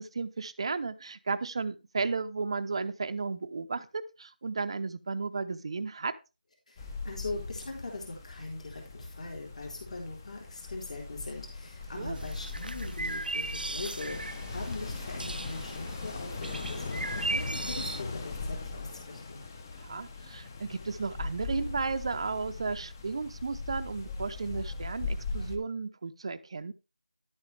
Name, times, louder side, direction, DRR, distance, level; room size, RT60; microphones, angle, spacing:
voice 1, 0.0-6.1 12.0-12.2 19.8-26.7, right 4 dB, 35° right, 10 dB, 0.7 m, -34 dB
voice 2, 6.7-19.4, left 3 dB, 45° left, 0 dB, 3.9 m, -41 dB
sound 1, 6.8-25.6, left 3 dB, 20° left, 0.9 m, -39 dB
sound 2, 12.1-18.0, right 2 dB, 70° right, 0.5 m, -37 dB
11.5 x 8.6 x 3.3 m, 0.28 s
figure-of-eight pair, 170°, 5 cm